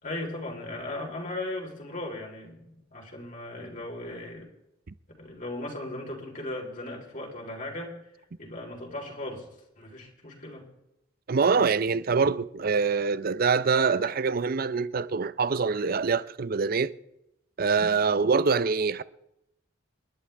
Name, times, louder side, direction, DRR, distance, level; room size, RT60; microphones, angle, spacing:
voice 1, 0.0-4.4 5.2-7.9 8.4-9.5 9.8-10.7, left 1 dB, 45° left, 4.0 m, -37 dB
voice 2, 11.3-16.9 17.6-19.0, right 5 dB, 50° right, 0.5 m, -24 dB
28.5 x 11.5 x 3.4 m
head